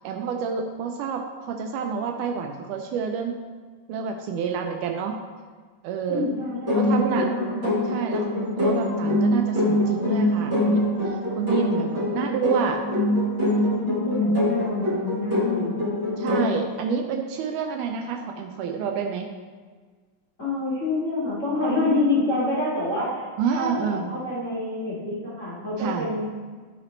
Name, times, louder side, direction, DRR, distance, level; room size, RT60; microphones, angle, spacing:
voice 1, 0.0-3.4 3.9-5.2 5.8-6.3 6.8-7.3 7.9-8.3 8.6-12.8 16.2-19.3 23.4-24.1 25.8-26.1, right 6 dB, 80° right, 3 dB, 2.0 m, -28 dB
voice 2, 6.1-7.5 13.7-15.8 20.4-26.2, left 2 dB, 25° left, -11 dB, 1.9 m, -27 dB
First Mushrooms, 6.7-16.6, left 1 dB, 40° right, 1.0 m, -24 dB
10.5 x 5.0 x 3.1 m, 1.5 s
omnidirectional pair, 3.7 m